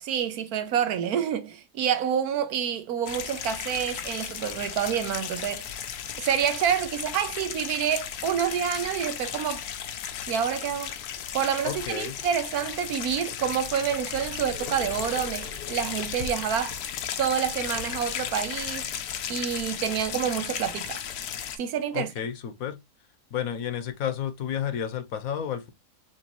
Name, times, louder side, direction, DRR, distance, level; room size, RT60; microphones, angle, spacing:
voice 1, 0.0-5.7 6.2-9.6 10.3-10.9 11.3-16.8 17.2-18.9 19.3-21.0 21.6-22.1, right 8 dB, 80° right, 1.2 m, -28 dB
sound 1, 3.1-21.6, left 9 dB, 85° left, 1.2 m, -35 dB
voice 2, 11.6-12.2 21.9-22.8 23.3-25.7, left 9 dB, 70° left, 1.2 m, -31 dB
6.1 x 2.7 x 2.9 m
omnidirectional pair, 1.6 m